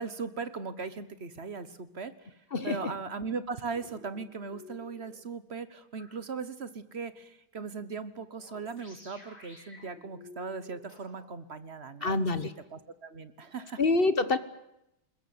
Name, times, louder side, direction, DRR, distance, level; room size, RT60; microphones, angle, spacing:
voice 1, 0.0-2.3 2.6-13.8, right 5 dB, 40° right, 13 dB, 1.1 m, -39 dB
sound 1, 3.7-5.2 6.0-6.1 8.3-11.3, left 2 dB, 55° left, 8.2 m, -52 dB
voice 2, 12.0-12.5 13.8-14.4, left 3 dB, 40° left, 13 dB, 0.9 m, -26 dB
22.0 x 20.5 x 9.6 m, 0.84 s
omnidirectional pair, 2.4 m